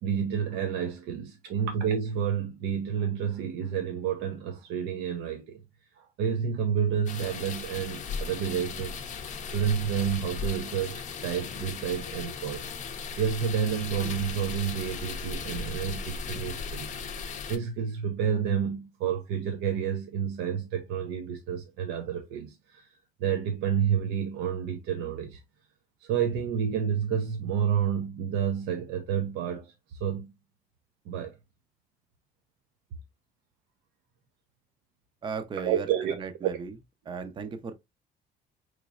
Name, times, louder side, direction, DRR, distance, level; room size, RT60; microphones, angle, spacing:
voice 1, 0.0-5.6 6.0-9.0 9.4-12.7 13.2-17.0 17.5-25.4 26.0-30.3 31.1-31.4 35.6-36.1 36.4-36.5, right 8 dB, 85° right, 0.6 m, -30 dB
sound 1, 7.1-17.6, left 5 dB, 45° left, 0.6 m, -37 dB
voice 2, 35.2-36.8 37.1-37.7, right 5 dB, 30° right, 0.5 m, -36 dB
3.9 x 3.1 x 2.3 m
cardioid pair, 110°, 17 cm